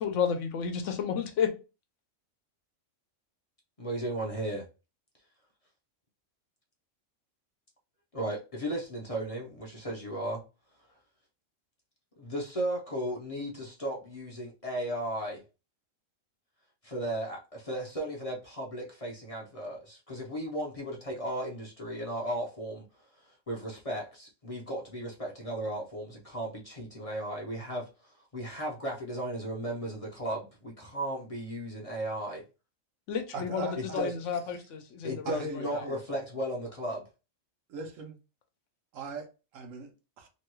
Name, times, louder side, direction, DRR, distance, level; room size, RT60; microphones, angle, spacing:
voice 1, 0.0-1.5 33.1-35.9, left 7 dB, 75° left, 0.9 m, -32 dB
voice 2, 3.8-4.6 8.1-10.4 12.2-15.4 16.8-22.8 23.2-32.5 33.8-34.1 35.0-37.1, right 1 dB, 40° left, 0.6 m, -35 dB
voice 3, 33.3-34.1 35.2-36.0 37.7-38.2 38.9-40.3, right 4 dB, 80° right, 1.1 m, -40 dB
2.9 x 2.3 x 3.0 m
omnidirectional pair, 1.3 m